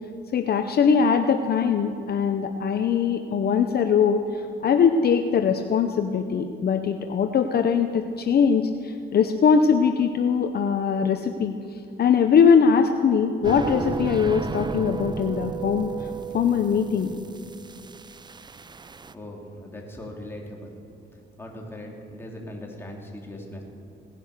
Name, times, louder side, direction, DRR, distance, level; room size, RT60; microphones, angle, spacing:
voice 1, 0.3-17.1, left 6 dB, 50° left, 6 dB, 0.8 m, -21 dB
sound 1, 13.4-19.1, right 5 dB, 20° right, 0.5 m, -34 dB
voice 2, 19.1-20.8 21.4-23.6, left 1 dB, 10° left, -1 dB, 3.2 m, -39 dB
18.0 x 11.0 x 6.7 m, 2.4 s
cardioid pair, 90°, 20 cm